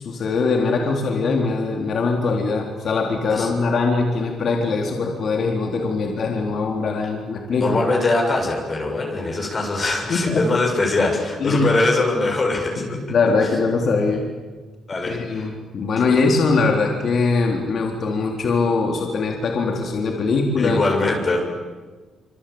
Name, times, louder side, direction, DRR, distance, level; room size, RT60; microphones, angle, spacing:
voice 1, 0.0-7.8 10.1-10.5 11.4-11.7 12.8-14.3 15.1-20.8, left 4 dB, 55° left, 1 dB, 3.8 m, -21 dB
voice 2, 7.6-12.8 14.9-15.5 20.6-21.4, left 2 dB, 35° left, 1 dB, 7.5 m, -22 dB
26.5 x 26.0 x 8.7 m, 1.4 s
cardioid pair, 90°, 0 cm